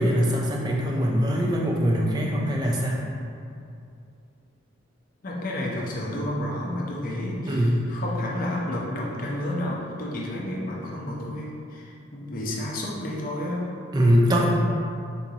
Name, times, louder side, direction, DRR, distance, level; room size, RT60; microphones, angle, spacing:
voice 1, 0.0-3.1 7.5-7.8 13.9-14.5, equal, 20° right, -2 dB, 0.3 m, -22 dB
voice 2, 5.2-13.7, left 1 dB, 45° left, -3 dB, 0.5 m, -31 dB
3.9 x 2.4 x 2.8 m, 2.5 s
head